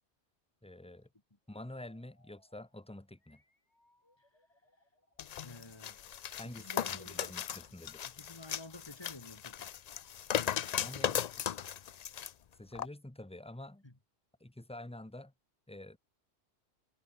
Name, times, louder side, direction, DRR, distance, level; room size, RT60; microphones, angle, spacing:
voice 1, 0.6-1.1 1.5-3.4 6.4-8.1 10.8-11.2 12.6-13.8 14.4-15.3 15.7-16.0, left 1 dB, 5° left, 1.1 m, -48 dB
sound 1, 1.4-8.2, left 1 dB, 75° left, 7.2 m, -71 dB
sound 2, 5.2-12.3 12.8-12.9, left 9 dB, 55° left, 0.4 m, -37 dB
voice 2, 5.4-6.0 6.4-7.7 8.0-9.7 13.8-13.9, left 2 dB, 20° left, 2.5 m, -52 dB
omnidirectional pair, 1.2 m